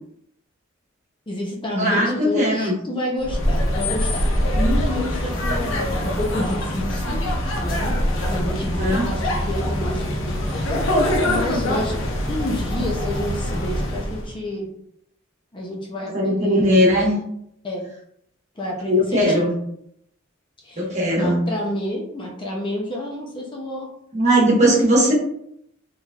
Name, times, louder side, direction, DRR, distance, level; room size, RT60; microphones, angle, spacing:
voice 1, 1.3-7.2 7.6-8.0 8.3-10.8 11.3-12.0 12.3-14.7 15.5-16.8 17.6-17.9 18.6-19.5 20.6-20.9 21.2-23.9, left 1 dB, 25° left, -2 dB, 0.6 m, -29 dB
voice 2, 1.8-2.7 8.8-9.1 16.0-17.1 18.9-19.5 20.8-21.4 24.1-25.1, equal, 35° right, -4 dB, 1.2 m, -18 dB
sound 1, 3.2-14.3, left 1 dB, 65° left, 0.8 m, -23 dB
3.8 x 3.2 x 2.4 m, 0.72 s
head